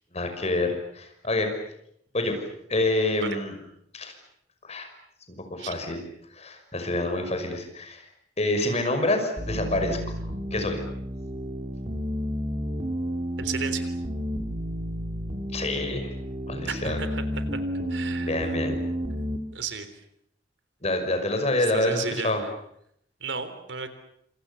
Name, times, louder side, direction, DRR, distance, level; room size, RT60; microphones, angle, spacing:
voice 1, 0.1-1.5 2.1-2.4 2.7-3.5 3.9-4.1 4.6-4.9 5.3-6.0 6.3-8.1 8.4-10.2 10.5-10.8 15.5-16.1 16.5-17.0 18.2-18.8 20.8-22.5, left 2 dB, 35° left, 6 dB, 5.8 m, -27 dB
sound 1, 9.4-19.4, equal, 35° right, 3.1 m, -31 dB
voice 2, 13.4-13.9 16.6-17.2 17.5-17.6 17.9-18.5 19.5-19.9 21.7-22.5 23.2-23.9, right 5 dB, 90° right, 10 dB, 3.6 m, -33 dB
28.0 x 27.0 x 7.0 m, 0.73 s
head